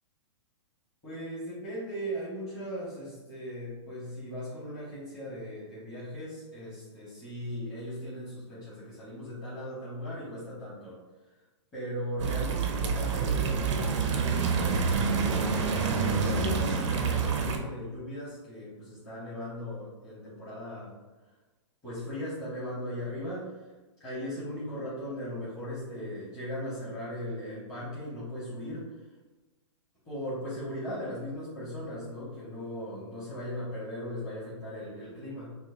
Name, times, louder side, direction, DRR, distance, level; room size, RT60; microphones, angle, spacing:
voice 1, 1.0-11.0 11.2-11.3 11.7-15.6 16.0-20.9 21.8-23.6 24.0-28.8 30.0-35.5, equal, 20° left, -12 dB, 1.3 m, -38 dB
sound 1, 12.2-17.6, right 5 dB, 75° right, 0.6 m, -27 dB
4.3 x 2.1 x 2.7 m, 1.2 s
hypercardioid pair, 150°, 16 cm